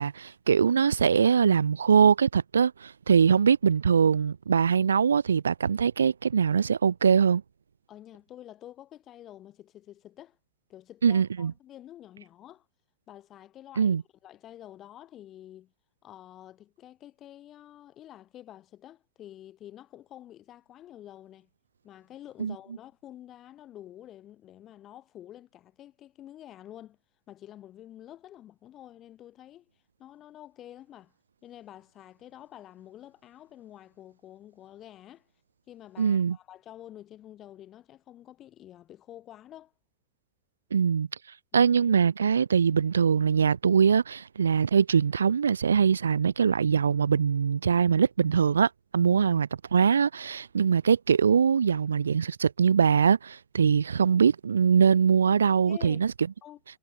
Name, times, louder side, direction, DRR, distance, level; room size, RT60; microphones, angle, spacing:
voice 1, 0.0-7.4 11.0-11.5 13.8-14.0 22.4-22.5 36.0-36.4 40.7-41.1 41.5-56.1, right 6 dB, 70° right, 0.5 m, -22 dB
voice 2, 7.9-10.4 10.7-12.6 13.1-15.7 16.0-21.5 21.8-27.0 27.3-29.7 30.0-31.1 31.4-35.3 35.7-39.7 55.7-56.0 56.4-56.6, left 12 dB, 30° left, 6.9 m, -48 dB
figure-of-eight pair, 90°, 0 cm